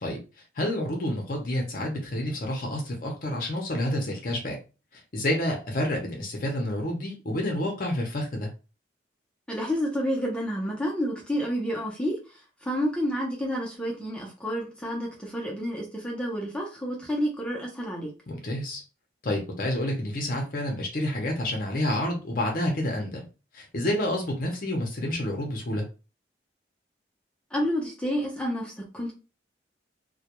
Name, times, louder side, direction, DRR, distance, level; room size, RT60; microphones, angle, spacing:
voice 1, 0.6-4.6 5.1-8.5 18.3-18.8 19.2-23.2 23.5-25.8, left 1 dB, 50° left, 0.6 m, -29 dB
voice 2, 9.5-18.1 27.5-29.1, equal, 5° left, 0.5 m, -30 dB
2.2 x 2.1 x 2.8 m
head